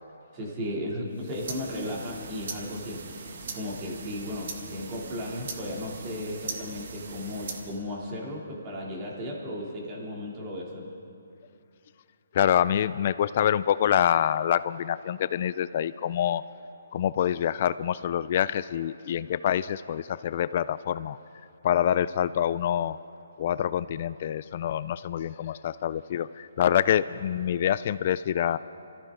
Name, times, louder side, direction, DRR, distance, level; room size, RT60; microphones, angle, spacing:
voice 1, 0.3-10.9, left 1 dB, 25° right, -3 dB, 2.8 m, -35 dB
sound 1, 1.1-7.8, right 4 dB, 55° right, 1.6 m, -40 dB
voice 2, 12.3-16.4 16.9-21.2 21.6-23.0 23.4-28.6, left 10 dB, 40° left, 16 dB, 0.3 m, -26 dB
25.5 x 14.5 x 3.8 m, 2.5 s
hypercardioid pair, 165°, 0 cm